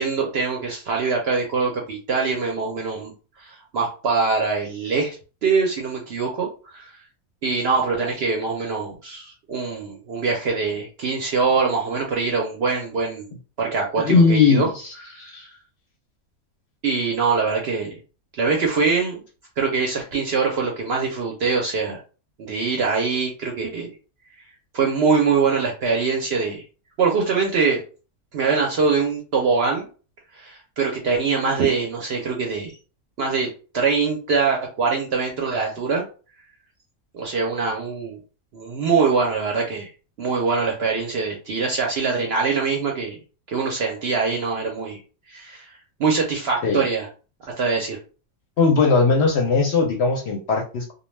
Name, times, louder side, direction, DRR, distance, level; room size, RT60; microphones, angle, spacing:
voice 1, 0.0-3.1 3.4-5.2 5.4-6.9 7.4-13.3 13.6-14.7 15.1-15.3 16.8-18.0 18.3-19.2 19.6-22.0 22.4-23.9 24.7-26.6 27.0-27.8 28.3-29.9 30.3-32.7 33.2-36.0 37.1-38.2 38.5-39.9 40.2-43.2 43.5-45.0 45.3-45.7 46.0-47.1 47.6-48.0, right 4 dB, 65° right, 1 dB, 0.6 m, -23 dB
voice 2, 14.0-15.5 46.6-46.8 48.6-50.9, left 4 dB, 65° left, 1 dB, 0.7 m, -19 dB
2.2 x 2.2 x 3.1 m, 0.35 s
omnidirectional pair, 1.5 m